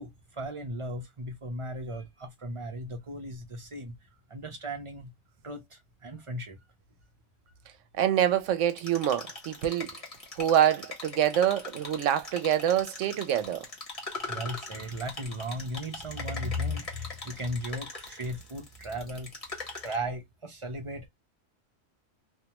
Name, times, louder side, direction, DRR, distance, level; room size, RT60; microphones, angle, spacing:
voice 1, 0.0-3.9 4.3-5.1 5.4-6.6 14.3-19.3 19.8-21.1, equal, 35° right, 0.5 m, -36 dB
voice 2, 8.0-9.9 10.4-13.6, right 10 dB, 80° right, 0.9 m, -26 dB
sound 1, 8.7-19.9, left 3 dB, 30° left, 1.1 m, -41 dB
2.5 x 2.3 x 2.8 m
omnidirectional pair, 1.3 m